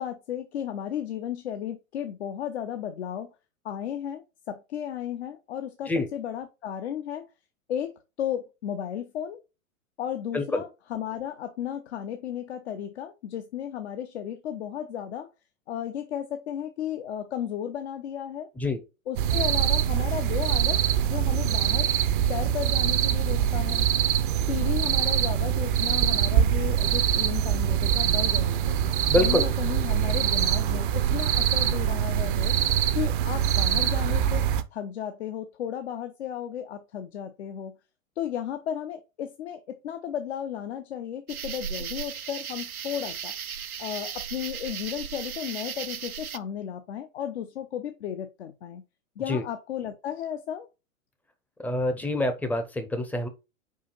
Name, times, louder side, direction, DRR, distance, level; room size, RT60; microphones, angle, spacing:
voice 1, 0.0-3.3 3.6-7.3 7.7-9.4 10.0-15.3 15.7-18.5 19.1-21.9 22.3-23.9 24.5-28.8 29.2-32.6 32.9-34.4 34.7-37.7 38.2-43.3 43.8-48.8 49.2-50.7, left 9 dB, 50° left, 0.9 m, -34 dB
sound 1, 19.2-34.6, right 10 dB, 40° right, 0.6 m, -24 dB
Bowed string instrument, 29.1-32.2 32.6-32.7, right 2 dB, 75° left, 2.7 m, -46 dB
voice 2, 29.1-29.4 49.3-49.4 51.6-53.3, left 2 dB, 5° left, 0.7 m, -26 dB
sound 2, 41.3-46.4, right 8 dB, 85° right, 0.6 m, -36 dB
5.0 x 4.9 x 4.1 m
figure-of-eight pair, 105°, 42 cm